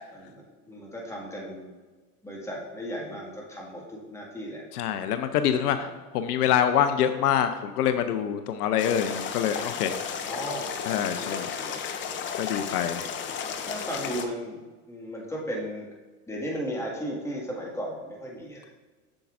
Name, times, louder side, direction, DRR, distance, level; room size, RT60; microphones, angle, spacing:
voice 1, 0.1-1.7 2.2-4.6 5.5-5.9 10.2-11.8 13.2-14.6 14.9-15.9 16.3-18.7, equal, 5° left, -3 dB, 1.8 m, -36 dB
voice 2, 4.7-5.9 6.1-10.0 10.9-11.5 11.8-11.9 12.4-13.1, left 9 dB, 75° left, 9 dB, 0.6 m, -25 dB
sound 1, 8.8-14.2, left 7 dB, 25° left, 0.5 m, -33 dB
7.6 x 7.0 x 2.5 m, 1.3 s
hypercardioid pair, 100°, 47 cm